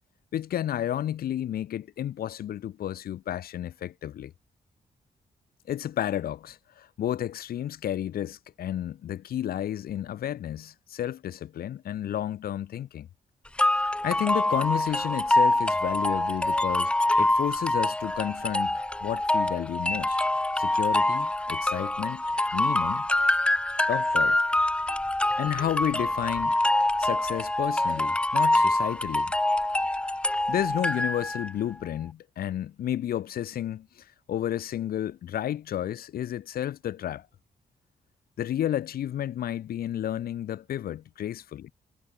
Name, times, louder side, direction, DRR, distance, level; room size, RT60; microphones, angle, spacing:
voice 1, 0.3-4.3 5.7-13.1 14.0-20.2 20.6-22.2 22.5-23.1 23.9-24.4 25.4-26.6 27.0-29.3 30.5-37.3 38.4-41.4, left 11 dB, 85° left, 1.1 m, -31 dB
sound 1, 13.6-31.5, left 1 dB, 5° left, 0.4 m, -25 dB
cardioid pair, 110°, 15 cm